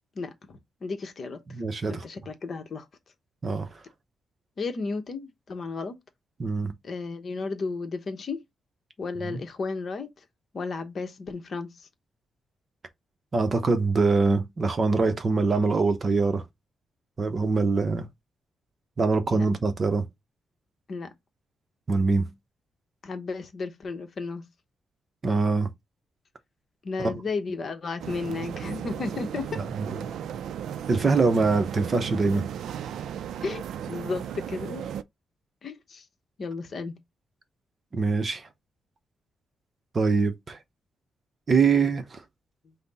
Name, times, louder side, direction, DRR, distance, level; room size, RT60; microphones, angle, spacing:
voice 1, 0.1-1.4 1.9-2.9 4.6-6.0 6.8-8.4 9.0-10.1 10.5-11.9 19.3-19.5 20.9-21.1 23.0-24.5 26.8-29.6 33.4-34.9 35.6-36.0 36.4-37.0, left 4 dB, 40° left, 0.8 m, -33 dB
voice 2, 1.5-2.0 3.4-3.7 6.4-6.7 9.3-9.4 13.3-16.4 17.2-18.0 19.0-20.1 21.9-22.3 25.2-25.7 27.0-27.1 29.6-30.0 30.9-32.5 37.9-38.5 39.9-40.6 41.5-42.2, right 4 dB, 35° right, 0.6 m, -24 dB
sound 1, 28.0-35.0, right 9 dB, 90° right, 0.3 m, -35 dB
5.6 x 2.0 x 4.0 m
wide cardioid pair, 155°, 0 cm